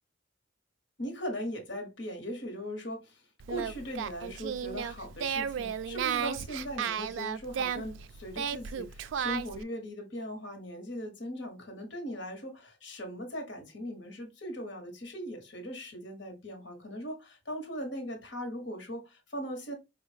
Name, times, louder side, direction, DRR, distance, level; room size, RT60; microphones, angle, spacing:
voice 1, 1.0-19.7, equal, 70° left, 1.2 m, -39 dB
Singing, 3.4-9.6, right 8 dB, 85° right, 0.3 m, -34 dB
4.7 x 2.4 x 3.2 m
head